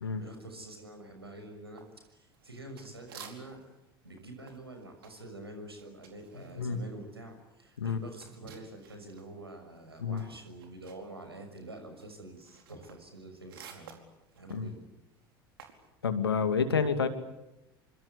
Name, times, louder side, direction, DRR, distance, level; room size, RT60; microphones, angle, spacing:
voice 1, 0.2-1.8 2.1-3.6 4.0-14.0 14.3-14.9, right 2 dB, 85° right, 5 dB, 6.2 m, -47 dB
sound 1, 1.8-3.8 4.1-9.3 9.6-15.9, right 8 dB, 70° right, 4.6 m, -54 dB
voice 2, 16.0-17.1, left 6 dB, 80° left, 9 dB, 2.6 m, -29 dB
27.5 x 25.5 x 8.4 m, 0.93 s
figure-of-eight pair, 70°, 13 cm